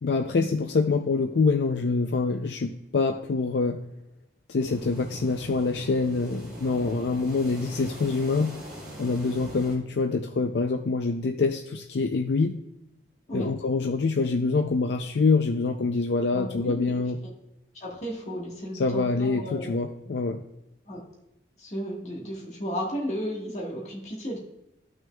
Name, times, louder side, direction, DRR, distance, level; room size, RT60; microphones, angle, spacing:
voice 1, 0.0-3.8 4.5-8.6 9.0-12.6 13.3-17.2 18.7-20.4, left 4 dB, 75° left, 5 dB, 0.4 m, -25 dB
sound 1, 4.6-9.8, equal, 5° right, 3.0 m, -42 dB
voice 2, 6.6-7.0 13.3-13.5 16.3-17.3 17.7-19.7 20.9-21.0 21.6-24.4, equal, 40° left, -2 dB, 1.5 m, -34 dB
14.0 x 6.1 x 2.3 m, 0.89 s
head